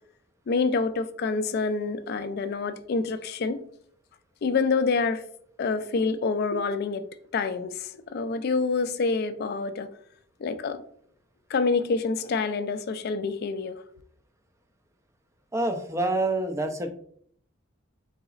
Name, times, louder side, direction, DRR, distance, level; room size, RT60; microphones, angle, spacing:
voice 1, 0.5-3.6 4.4-5.2 5.6-7.1 7.3-9.9 10.4-10.8 11.5-13.8, left 4 dB, 50° left, 0.3 m, -27 dB
voice 2, 15.5-16.9, right 2 dB, 15° right, 0.4 m, -27 dB
4.0 x 3.9 x 2.4 m
head